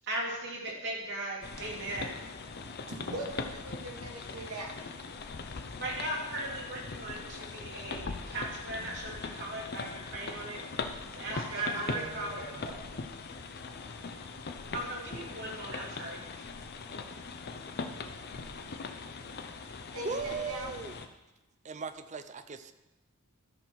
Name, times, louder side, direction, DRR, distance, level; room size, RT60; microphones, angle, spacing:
voice 1, 0.0-2.1 5.8-10.6 11.1-12.6 14.7-16.2, right 1 dB, 55° right, -3 dB, 2.7 m, -38 dB
sound 1, 1.4-21.1, left 4 dB, 45° left, 0.7 m, -41 dB
voice 2, 2.5-4.8 11.3-13.1 19.9-20.7, right 1 dB, 75° right, 0 dB, 2.0 m, -42 dB
voice 3, 20.0-20.9 21.6-22.7, right 5 dB, 35° right, 11 dB, 0.5 m, -38 dB
13.0 x 5.9 x 4.6 m, 1.0 s
head